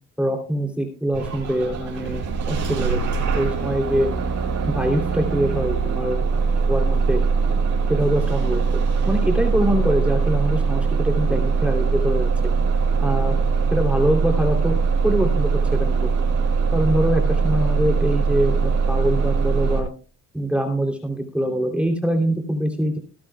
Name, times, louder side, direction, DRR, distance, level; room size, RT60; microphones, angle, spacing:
voice 1, 0.2-4.1 4.7-7.2 7.9-12.3 13.0-13.4 13.7-14.7 15.0-16.2 16.7-19.9 20.3-23.0, equal, 5° right, 2 dB, 3.0 m, -24 dB
Bus / Engine starting, 1.1-19.8, right 5 dB, 75° right, 6.9 m, -21 dB
22.0 x 12.5 x 2.3 m, 0.35 s
cardioid pair, 90°, 30 cm